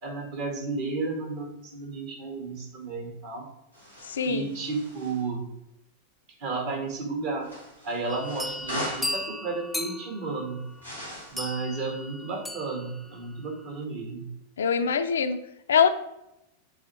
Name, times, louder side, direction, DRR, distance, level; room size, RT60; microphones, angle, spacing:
voice 1, 0.0-3.5 4.2-5.5 6.4-7.4 7.8-10.6 11.3-14.3, right 3 dB, 50° right, 1 dB, 1.8 m, -32 dB
sound 1, 3.7-5.2 7.4-9.2 10.8-11.5, left 1 dB, 85° right, 1.8 m, -39 dB
voice 2, 4.0-4.5 14.6-15.4 15.7-15.9, left 6 dB, 65° left, 9 dB, 0.4 m, -23 dB
sound 2, 8.1-13.2, left 1 dB, 5° left, 0.5 m, -36 dB
6.9 x 3.7 x 4.4 m, 0.86 s
figure-of-eight pair, 90°, 0 cm